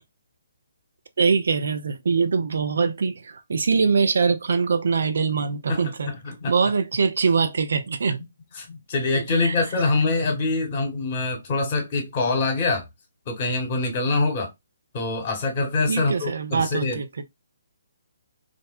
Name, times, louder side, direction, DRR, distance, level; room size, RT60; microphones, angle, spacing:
voice 1, 1.2-6.1 6.5-8.2 9.1-9.5 15.9-17.2, right 5 dB, 60° right, 0.3 m, -23 dB
voice 2, 5.7-6.5 8.6-12.8 13.3-14.5 14.9-17.0, left 3 dB, 35° left, 1.0 m, -24 dB
2.5 x 2.1 x 2.3 m
figure-of-eight pair, 135°, 0 cm